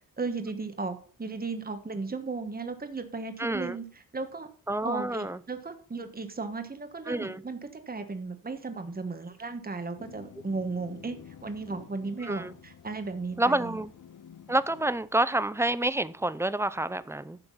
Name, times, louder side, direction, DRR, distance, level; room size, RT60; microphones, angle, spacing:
voice 1, 0.2-3.8 4.1-4.5 4.8-11.2 11.4-13.8, right 4 dB, 25° right, 1.3 m, -35 dB
voice 2, 3.4-3.8 4.7-5.4 7.1-7.4 12.2-12.5 13.4-13.9 14.5-17.4, right 1 dB, 10° right, 0.5 m, -28 dB
sound 1, 10.0-15.2, left 8 dB, 65° left, 0.8 m, -50 dB
11.0 x 6.9 x 5.5 m
wide cardioid pair, 130°, 34 cm